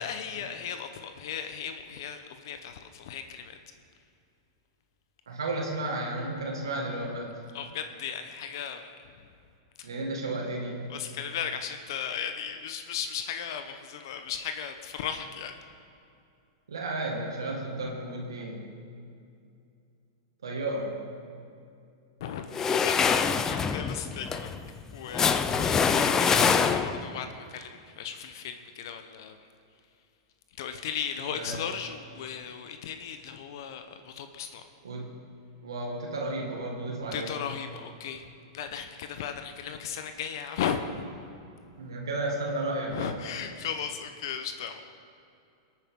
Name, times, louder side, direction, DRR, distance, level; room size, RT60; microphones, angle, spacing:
voice 1, 0.0-3.6 7.5-8.8 9.8-9.9 10.9-15.5 22.2-24.5 24.9-29.4 30.6-34.6 37.1-38.3 38.5-41.1 42.9-44.8, left 8 dB, 65° left, 7 dB, 0.9 m, -36 dB
voice 2, 5.3-7.3 9.8-10.8 16.7-18.7 20.4-21.0 31.3-31.6 34.8-35.1 35.6-37.4 41.8-43.1, right 2 dB, 90° right, -1 dB, 1.9 m, -33 dB
sound 1, 22.5-27.1, left 6 dB, 20° left, 0.6 m, -25 dB
21.0 x 9.0 x 3.7 m, 2.5 s
hypercardioid pair, 115°, 2 cm